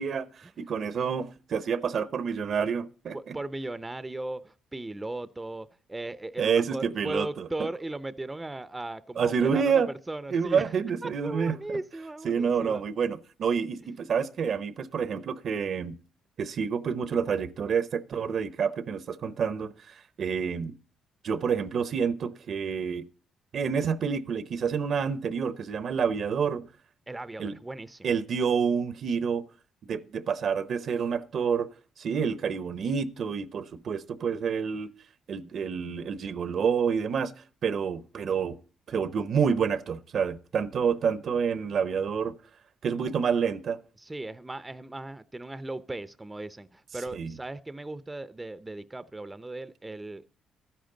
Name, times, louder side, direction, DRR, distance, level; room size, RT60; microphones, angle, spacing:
voice 1, 0.0-3.4 6.4-7.5 9.2-9.9 10.3-11.6 12.2-16.0 16.4-19.7 20.2-20.7 21.2-23.0 23.5-26.7 27.4-27.5 28.0-29.4 29.9-31.7 32.0-34.9 35.3-37.3 37.6-38.6 38.9-42.3 42.8-43.8 47.1-47.3, right 6 dB, 60° right, 0.8 m, -28 dB
voice 2, 3.1-10.7 11.0-12.8 13.8-13.9 27.1-28.1 44.0-50.2, right 2 dB, 15° right, 0.6 m, -37 dB
12.5 x 10.5 x 3.9 m
cardioid pair, 90°, 0 cm